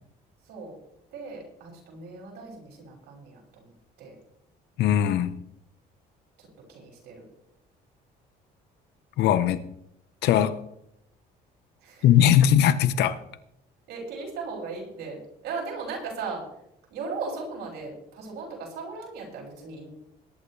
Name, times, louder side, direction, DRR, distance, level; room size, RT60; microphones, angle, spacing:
voice 1, 0.4-0.8 1.1-4.2 6.4-7.2 11.8-12.2 13.9-16.4 16.9-19.9, right 4 dB, 80° right, 6.7 m, -37 dB
voice 2, 4.8-5.4 9.2-9.6 10.2-10.6 12.0-13.2, left 10 dB, 80° left, 1.0 m, -20 dB
21.5 x 11.0 x 3.3 m
cardioid pair, 110°, 17 cm